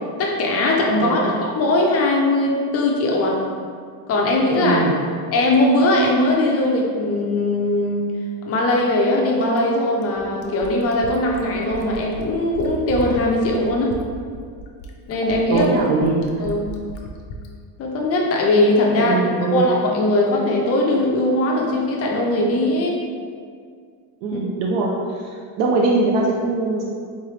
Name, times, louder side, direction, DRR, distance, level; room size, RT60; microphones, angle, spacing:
voice 1, 0.2-3.4 4.1-4.8 5.3-8.1 8.5-13.9 15.1-15.7 16.4-16.7 17.8-23.0 24.3-24.4, left 1 dB, 30° left, -1 dB, 0.4 m, -20 dB
voice 2, 1.0-1.4 4.6-4.9 15.5-16.4 19.0-19.7 24.2-25.3 25.6-26.8, right 3 dB, 65° right, -2 dB, 0.5 m, -21 dB
Fill (with liquid), 9.4-17.5 18.8-18.9, equal, 75° left, 0.6 m, -36 dB
3.6 x 3.3 x 3.1 m, 2.1 s
cardioid pair, 165°, 48 cm